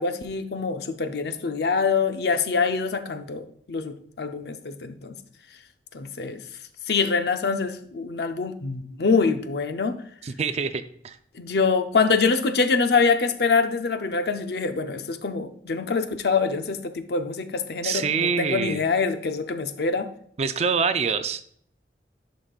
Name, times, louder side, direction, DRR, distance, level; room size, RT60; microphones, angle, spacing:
voice 1, 0.0-5.2 5.9-6.4 6.9-10.0 11.4-20.1, left 4 dB, 65° left, 8 dB, 0.6 m, -25 dB
voice 2, 10.2-11.2 17.8-18.8 20.4-21.5, right 5 dB, 35° right, 10 dB, 0.4 m, -25 dB
11.0 x 5.2 x 2.4 m, 0.64 s
head